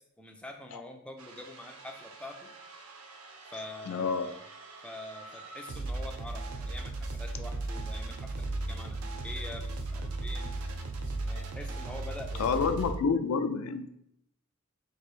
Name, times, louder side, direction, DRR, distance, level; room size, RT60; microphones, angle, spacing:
voice 1, 0.2-2.5 3.5-4.4 4.8-10.5 11.2-12.6, left 1 dB, 5° left, 2 dB, 0.3 m, -45 dB
sound 1, 1.2-13.0, right 2 dB, 80° right, 0.5 m, -38 dB
voice 2, 3.9-4.3 12.4-13.9, left 5 dB, 85° left, 9 dB, 0.4 m, -28 dB
3.1 x 2.6 x 4.4 m, 0.75 s
head